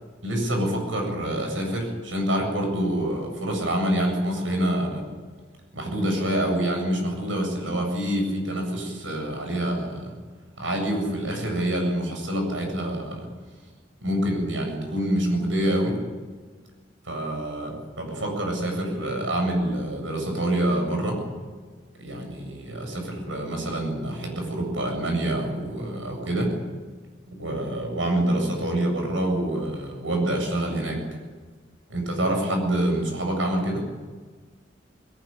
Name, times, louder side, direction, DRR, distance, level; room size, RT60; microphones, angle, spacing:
voice 1, 0.2-5.0 5.7-10.1 10.6-13.3 14.0-16.0 17.0-21.2 22.0-26.5 27.3-31.0 31.9-33.8, right 1 dB, 80° right, 3 dB, 7.9 m, -26 dB
21.0 x 19.5 x 9.2 m, 1.5 s
head